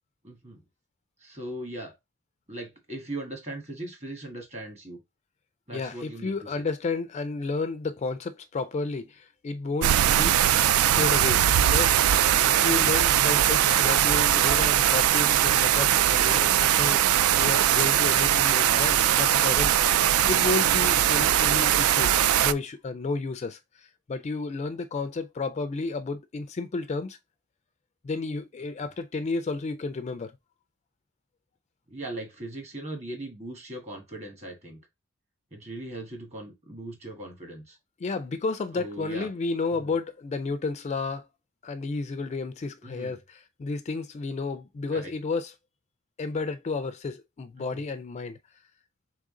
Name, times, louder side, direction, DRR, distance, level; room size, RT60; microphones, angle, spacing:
voice 1, 0.2-0.6 1.2-1.9 2.5-5.0 5.7-6.6 28.8-28.9 31.9-34.8 35.5-37.8 38.7-39.3 39.8-39.9 42.8-43.2 44.9-45.1 47.6-47.8, right 1 dB, 30° right, 1.5 m, -39 dB
voice 2, 5.7-10.4 10.8-12.1 12.5-27.2 28.0-30.3 38.0-41.3 41.6-45.5 46.2-48.4, left 3 dB, 30° left, 0.3 m, -32 dB
sound 1, 9.8-22.5, right 11 dB, 75° right, 0.3 m, -21 dB
3.7 x 3.5 x 3.7 m
head